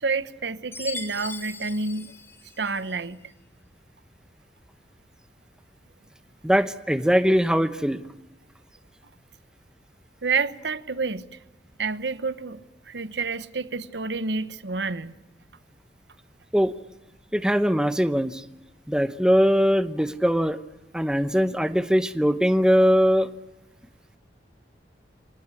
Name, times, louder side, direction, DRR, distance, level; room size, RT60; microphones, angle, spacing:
voice 1, 0.0-2.1 2.6-3.2 10.2-11.2 11.8-12.6 12.9-15.1, right 4 dB, 80° right, 1.0 m, -28 dB
Chime, 0.7-3.0, left 3 dB, 15° left, 1.3 m, -39 dB
voice 2, 6.4-8.0 16.5-16.7 17.3-18.4 18.9-20.6 20.9-23.3, equal, 5° right, 0.8 m, -21 dB
25.5 x 18.5 x 8.5 m
head